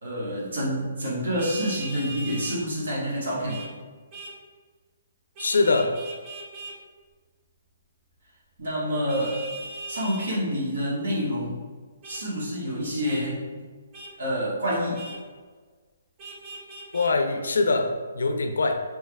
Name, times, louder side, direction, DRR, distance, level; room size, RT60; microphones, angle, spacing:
voice 1, 0.0-3.6 8.6-9.4 9.9-11.6 12.0-13.4 14.2-15.0, equal, 75° right, -5 dB, 1.3 m, -28 dB
Vehicle horn car horn honking, 1.4-2.6 3.5-3.7 4.1-4.4 5.4-6.8 9.1-10.4 12.0-12.2 13.1-13.2 13.9-14.1 14.9-15.2 16.2-17.1, right 2 dB, 25° right, 0.5 m, -39 dB
voice 2, 5.4-6.0 16.9-18.8, left 3 dB, 90° left, 7 dB, 0.3 m, -23 dB
3.2 x 3.2 x 2.2 m, 1.4 s
hypercardioid pair, 155°, 0 cm